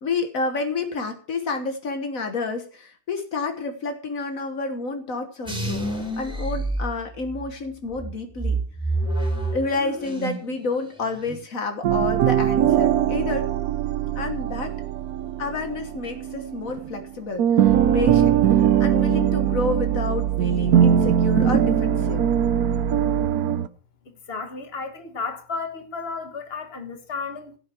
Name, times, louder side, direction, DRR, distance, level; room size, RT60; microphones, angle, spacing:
voice 1, 0.0-5.9 6.2-8.6 9.5-13.5 14.2-14.8 15.4-22.3, left 3 dB, 70° left, 1.7 m, -29 dB
sound 1, 5.4-7.5 7.9-10.5 10.8-11.4, right 2 dB, 5° right, 3.0 m, -28 dB
sound 2, 11.8-17.1 17.4-23.7, right 9 dB, 90° right, 1.3 m, -21 dB
voice 2, 24.1-27.6, left 4 dB, 45° left, 1.8 m, -33 dB
16.5 x 8.3 x 4.5 m
omnidirectional pair, 1.5 m